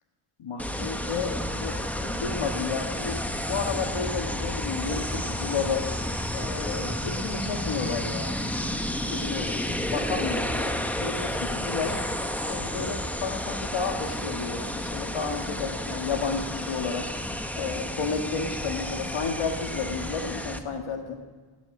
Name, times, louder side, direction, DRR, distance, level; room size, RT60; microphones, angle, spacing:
voice 1, 0.4-5.8 6.3-8.8 9.1-12.0 12.5-17.0 17.5-21.2, left 5 dB, 75° left, 4 dB, 1.7 m, -32 dB
sound 1, 0.6-20.6, left 1 dB, 5° left, 0.8 m, -31 dB
17.5 x 8.2 x 7.7 m, 1.5 s
wide cardioid pair, 135°, 50 cm